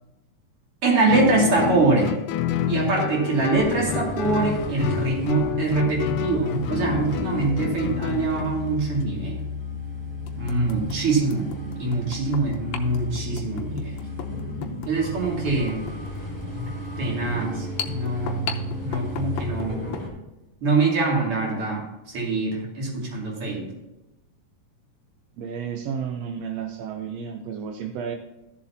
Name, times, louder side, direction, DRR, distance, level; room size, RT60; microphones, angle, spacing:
voice 1, 0.8-2.2 2.7-9.4 10.4-11.5 11.8-14.0 14.9-15.8 17.0-19.8 20.6-23.7, right 3 dB, 45° right, -2 dB, 3.3 m, -24 dB
Guitar, 1.1-8.6, left 9 dB, 90° left, 2.1 m, -28 dB
sound 1, 3.5-20.1, left 1 dB, 5° left, 2.5 m, -34 dB
sound 2, 7.3-7.5 8.9-9.0 9.6-9.7 10.3-20.1, left 7 dB, 70° left, 1.8 m, -37 dB
voice 2, 25.4-28.2, right 7 dB, 75° right, 3 dB, 1.6 m, -32 dB
14.0 x 7.3 x 2.8 m, 0.98 s
omnidirectional pair, 3.6 m